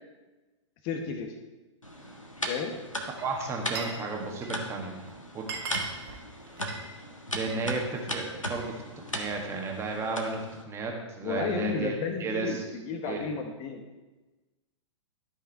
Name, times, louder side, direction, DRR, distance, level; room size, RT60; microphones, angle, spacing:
voice 1, 0.8-1.4 2.5-2.8 11.2-13.8, left 5 dB, 30° left, 5 dB, 1.0 m, -32 dB
sound 1, 1.8-10.6, equal, 90° left, 1.5 m, -38 dB
Glass, 3.0-4.0 4.3-4.7 5.1-5.2 5.4-7.7 8.0-8.8, right 5 dB, 50° right, 1.9 m, -40 dB
voice 2, 3.1-5.0 5.3-5.5 7.3-8.8 9.1-11.9 12.2-12.6 13.1-13.3, right 3 dB, 15° right, 1 dB, 1.6 m, -33 dB
12.5 x 5.6 x 4.6 m, 1.2 s
figure-of-eight pair, 110°, 16 cm